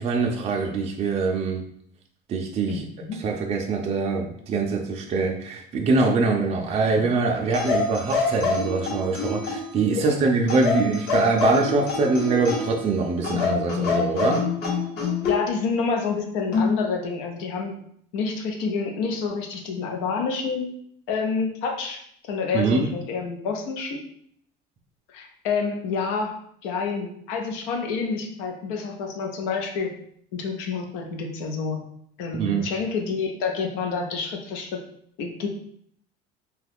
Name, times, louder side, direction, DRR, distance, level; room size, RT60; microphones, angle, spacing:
voice 1, 0.0-1.6 2.3-2.8 3.2-14.4 22.5-22.9 32.3-32.6, right 4 dB, 35° right, 1 dB, 0.4 m, -23 dB
voice 2, 2.7-3.2 10.1-10.2 15.2-17.8 18.1-20.7 21.1-24.0 25.1-26.3 26.6-29.9 30.3-31.8 32.2-34.8 35.2-35.5, left 5 dB, 85° left, 3 dB, 0.6 m, -28 dB
sound 1, 7.5-9.8 10.5-12.8 13.2-15.4 16.5-16.8, left 4 dB, 55° left, 1.0 m, -26 dB
2.8 x 2.3 x 3.4 m, 0.67 s
cardioid pair, 130°, 20 cm